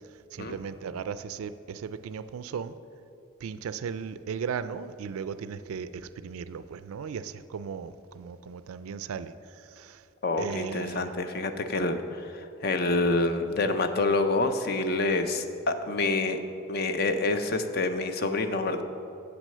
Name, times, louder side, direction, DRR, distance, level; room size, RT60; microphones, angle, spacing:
voice 1, 0.3-2.7 3.4-10.0 10.4-11.1, right 6 dB, 85° right, 13 dB, 0.3 m, -36 dB
voice 2, 10.2-16.4 16.7-18.8, left 2 dB, 45° left, 8 dB, 0.5 m, -27 dB
8.0 x 6.2 x 6.6 m, 2.8 s
head